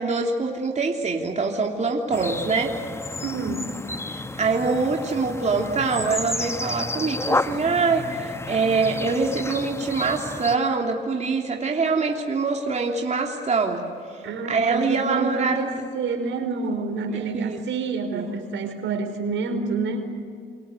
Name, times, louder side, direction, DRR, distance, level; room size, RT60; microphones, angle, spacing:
voice 1, 0.0-2.8 4.1-15.8 17.1-17.6 18.1-18.3, right 4 dB, 35° right, 1 dB, 3.2 m, -24 dB
sound 1, 2.1-10.6, left 2 dB, 15° left, 1.2 m, -31 dB
voice 2, 3.2-3.7 14.2-20.2, right 4 dB, 75° right, 6 dB, 4.8 m, -28 dB
28.0 x 24.5 x 8.1 m, 2.4 s
cardioid pair, 90°, 20 cm